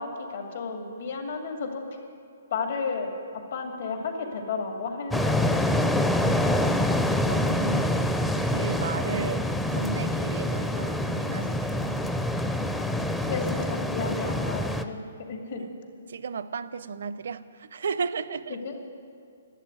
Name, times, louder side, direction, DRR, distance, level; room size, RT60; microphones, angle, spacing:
voice 1, 0.0-1.8 2.5-3.1 3.5-5.5 13.3-15.6 16.0-16.1 18.5-18.9, left 4 dB, 65° left, 3 dB, 2.3 m, -33 dB
sound 1, 5.1-14.8, left 1 dB, 5° left, 0.5 m, -26 dB
voice 2, 7.2-8.1 8.4-12.0 15.5-15.7 16.1-18.6, right 5 dB, 70° right, 15 dB, 0.5 m, -34 dB
11.5 x 8.5 x 9.4 m, 2.4 s
hypercardioid pair, 150°, 0 cm